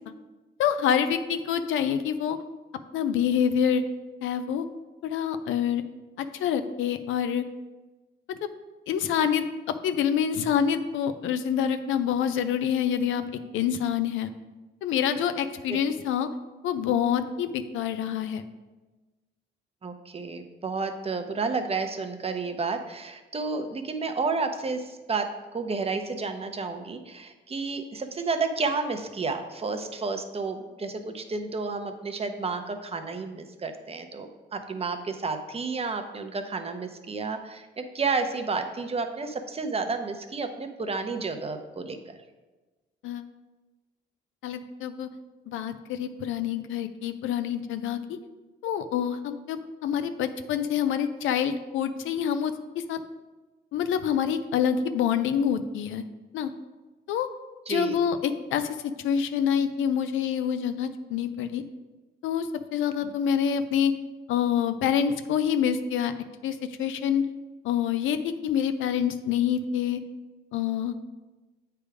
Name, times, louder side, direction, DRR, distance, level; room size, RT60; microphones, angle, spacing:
voice 1, 0.6-2.4 2.9-3.8 4.2-4.6 5.0-5.8 6.2-7.5 8.3-8.5 8.9-13.2 13.5-14.3 14.8-16.3 16.6-18.4 43.0-43.2 44.4-45.1 45.5-48.2 48.6-53.0 53.7-56.0 56.3-56.5 57.1-57.3 57.7-61.6 62.2-63.9 64.3-66.1 66.4-67.2 67.6-70.0 70.5-70.9, left 8 dB, 80° left, 10 dB, 0.5 m, -26 dB
voice 2, 19.8-25.3 25.5-42.2 57.7-58.0, right 4 dB, 30° right, 7 dB, 0.7 m, -31 dB
8.1 x 3.4 x 4.8 m, 1.2 s
cardioid pair, 90°, 20 cm